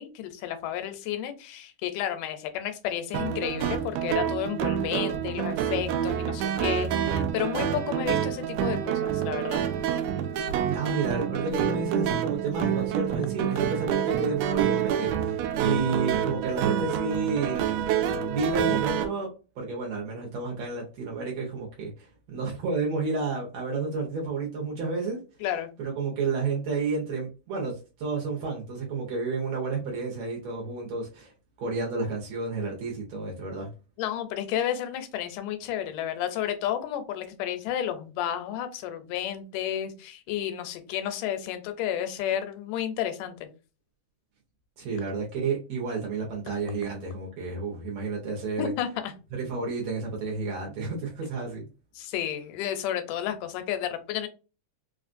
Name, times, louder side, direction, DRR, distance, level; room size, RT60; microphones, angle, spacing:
voice 1, 0.0-9.6 25.4-25.7 34.0-43.5 48.6-49.1 52.0-54.3, left 10 dB, 85° left, 2.2 m, -31 dB
sound 1, 3.1-19.0, right 9 dB, 80° right, 1.5 m, -27 dB
voice 2, 10.7-17.8 18.3-19.3 19.6-25.2 25.8-27.7 28.0-31.3 31.6-33.7 44.8-48.7 49.3-51.7, right 4 dB, 65° right, 1.9 m, -31 dB
4.9 x 2.4 x 2.5 m
omnidirectional pair, 3.6 m